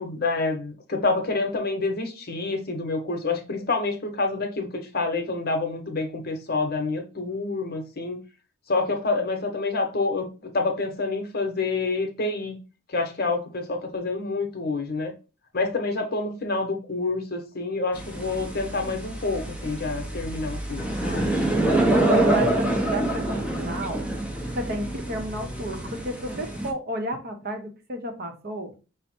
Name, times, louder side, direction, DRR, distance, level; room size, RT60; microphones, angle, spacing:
voice 1, 0.0-8.2 8.7-12.6 12.9-15.1 15.5-21.3, left 3 dB, 45° left, 0.9 m, -28 dB
sound 1, 17.9-26.7, right 1 dB, 5° right, 0.6 m, -26 dB
voice 2, 21.9-24.1 24.5-28.7, right 1 dB, 45° right, 0.8 m, -31 dB
5.4 x 2.1 x 4.2 m
head